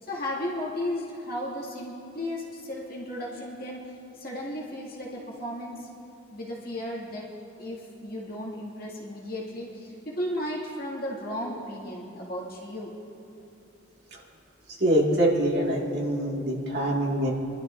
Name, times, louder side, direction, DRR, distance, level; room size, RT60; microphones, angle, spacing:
voice 1, 0.0-3.8 4.1-5.9 6.3-7.3 7.6-12.9, left 1 dB, 50° left, -5 dB, 2.2 m, -34 dB
voice 2, 14.8-17.3, equal, 50° right, -3 dB, 2.1 m, -24 dB
25.5 x 12.0 x 2.6 m, 2.7 s
head